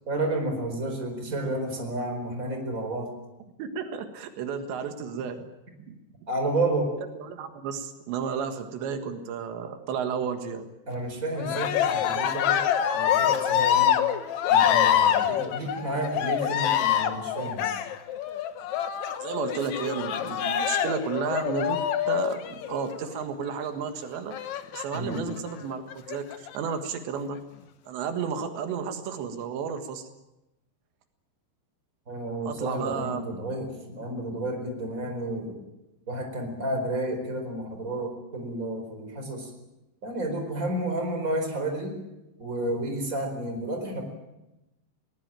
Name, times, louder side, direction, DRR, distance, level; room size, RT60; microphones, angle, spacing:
voice 1, 0.1-3.1 6.3-6.9 10.9-12.6 12.9-13.9 14.5-17.7 24.9-25.3 32.1-35.6 36.1-39.5 40.0-41.9 42.4-44.0, right 1 dB, 20° right, 5 dB, 4.4 m, -31 dB
voice 2, 3.6-5.5 5.9-6.0 7.3-10.7 19.2-21.8 22.1-24.4 24.7-27.4 27.9-30.1 32.5-33.2, right 6 dB, 85° right, 7 dB, 3.8 m, -32 dB
Cheering, 11.4-23.1 24.3-25.2 25.9-26.6, left 10 dB, 70° left, 1.7 m, -25 dB
21.5 x 19.0 x 9.0 m, 0.95 s
omnidirectional pair, 5.0 m